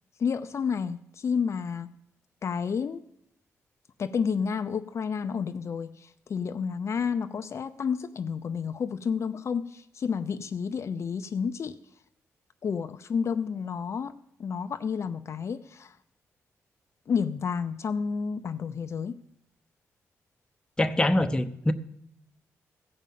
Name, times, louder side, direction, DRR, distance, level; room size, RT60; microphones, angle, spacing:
voice 1, 0.2-1.9 2.4-3.0 4.0-11.8 12.6-14.1 14.4-16.0 17.1-19.2, left 6 dB, 55° left, 9 dB, 0.6 m, -30 dB
voice 2, 20.8-21.7, left 1 dB, 15° left, 8 dB, 0.9 m, -24 dB
15.0 x 5.4 x 7.5 m, 0.76 s
cardioid pair, 75°, 6 cm